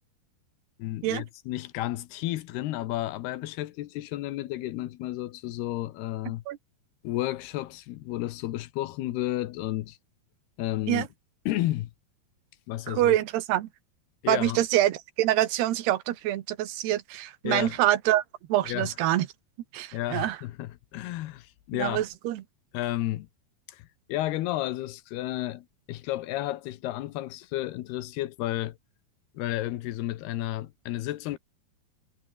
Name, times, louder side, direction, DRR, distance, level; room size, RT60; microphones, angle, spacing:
voice 1, 0.8-6.4 7.0-10.0 10.6-11.1 11.5-11.9 12.7-13.2 14.2-14.6 17.4-17.8 18.6-18.9 19.9-22.0 22.7-23.3 23.7-28.8 29.3-31.4, left 15 dB, 75° left, 3.0 m, -32 dB
voice 2, 12.9-13.7 14.3-18.2 18.5-19.3 19.7-20.4 21.7-22.4, right 14 dB, 80° right, 3.3 m, -25 dB
omnidirectional pair, 4.7 m